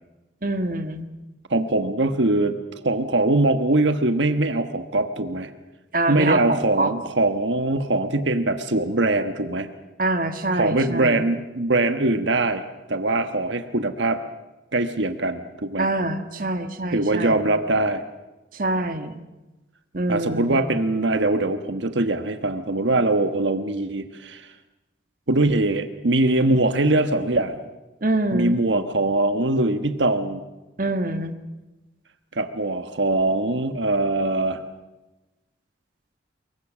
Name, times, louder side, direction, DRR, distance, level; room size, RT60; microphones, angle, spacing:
voice 1, 0.4-1.0 5.9-6.9 10.0-11.2 15.8-17.4 18.5-19.2 19.9-20.6 28.0-28.6 30.8-31.3, right 2 dB, 50° right, 8 dB, 1.5 m, -25 dB
voice 2, 1.5-5.5 6.1-9.7 10.5-12.6 12.9-14.2 14.7-15.9 16.9-18.0 20.1-24.5 25.3-27.6 28.3-30.4 32.3-34.6, right 2 dB, 75° right, 9 dB, 1.3 m, -22 dB
24.0 x 22.5 x 7.4 m, 1.1 s
head